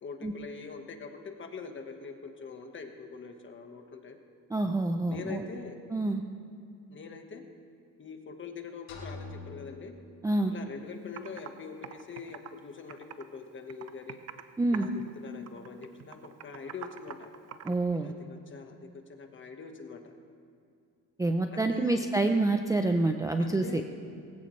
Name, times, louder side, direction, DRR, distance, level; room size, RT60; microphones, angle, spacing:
voice 1, 0.0-4.2 5.1-5.8 6.9-7.4 8.0-9.9 10.5-14.2 14.7-17.3 18.0-20.1 21.5-22.1 23.4-23.9, left 5 dB, 35° left, 5 dB, 1.4 m, -43 dB
voice 2, 4.5-5.4 5.9-6.2 10.2-10.5 14.6-14.9 17.6-18.1 21.2-23.8, right 2 dB, 10° right, 5 dB, 0.5 m, -27 dB
sound 1, 8.9-10.8, left 2 dB, 85° left, 4.2 m, -46 dB
Computer keyboard, 10.7-10.8 11.2-11.5 11.8-13.4 13.7-14.5 14.7-15.1 15.5-17.8, right 9 dB, 45° right, 0.8 m, -44 dB
21.5 x 16.0 x 3.2 m, 2.4 s
cardioid pair, 150°, 36 cm